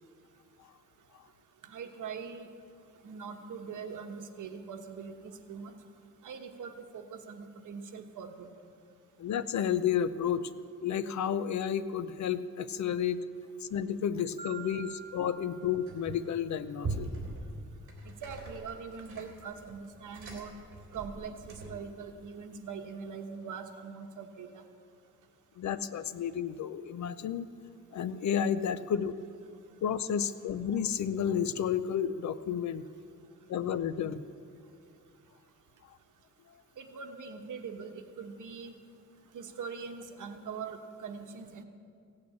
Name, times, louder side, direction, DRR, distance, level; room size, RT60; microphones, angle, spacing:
voice 1, 1.6-2.5 3.0-5.7 6.2-8.5 18.0-20.5 20.9-24.6 36.8-38.7 39.3-41.6, right 5 dB, 70° right, 6 dB, 1.2 m, -42 dB
voice 2, 9.2-10.5 10.8-13.2 13.6-17.1 25.6-27.5 27.9-29.2 29.8-32.9 33.5-34.2, left 8 dB, 60° left, 14 dB, 0.6 m, -31 dB
Marimba xylophone, 14.4-16.6, right 6 dB, 15° right, 1.9 m, -48 dB
sound 1, 15.9-16.4 16.8-21.9, right 2 dB, 45° right, 3.0 m, -41 dB
16.0 x 8.6 x 8.5 m, 2.3 s
wide cardioid pair, 160°, 32 cm